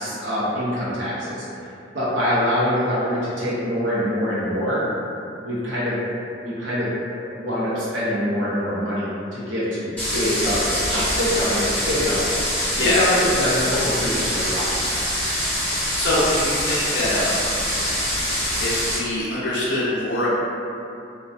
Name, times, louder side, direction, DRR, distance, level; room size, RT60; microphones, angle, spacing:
voice 1, 0.0-1.4 1.9-4.8 5.4-6.1 6.4-12.4 12.8-14.7, equal, 80° right, -9 dB, 0.6 m, -24 dB
sound 1, 10.0-19.0, equal, 10° left, 0.6 m, -24 dB
voice 2, 16.0-17.5 18.6-20.3, left 1 dB, 70° left, -8 dB, 0.4 m, -23 dB
2.4 x 2.2 x 2.4 m, 2.6 s
head